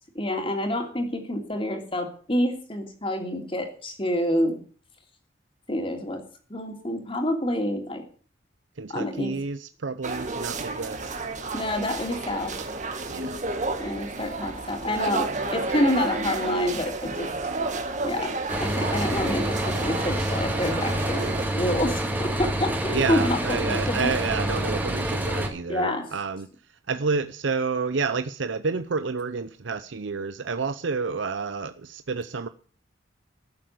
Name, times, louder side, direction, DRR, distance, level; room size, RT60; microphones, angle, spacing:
voice 1, 0.1-4.6 5.7-6.2 6.5-8.0 8.9-9.3 11.5-12.5 13.8-17.3 18.0-21.2 21.6-24.5 25.7-26.1, left 1 dB, 30° left, 3.0 m, -28 dB
voice 2, 8.8-11.1 13.1-13.4 22.9-26.5 26.9-32.5, right 4 dB, 80° right, 0.7 m, -29 dB
sound 1, 10.0-21.4, right 3 dB, 40° right, 1.9 m, -31 dB
sound 2, 18.5-25.5, right 1 dB, 10° right, 2.2 m, -27 dB
14.0 x 7.7 x 8.2 m
head